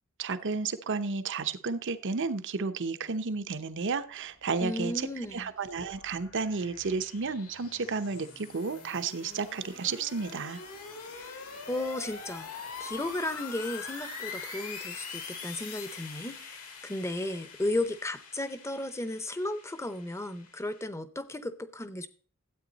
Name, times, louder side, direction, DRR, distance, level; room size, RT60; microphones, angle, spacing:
voice 1, 0.2-10.6, right 4 dB, 55° right, 0.8 m, -32 dB
voice 2, 4.6-5.5 11.1-22.1, left 1 dB, 15° left, 0.7 m, -35 dB
sound 1, 5.0-20.8, left 5 dB, 75° left, 2.4 m, -44 dB
13.0 x 8.5 x 4.0 m
head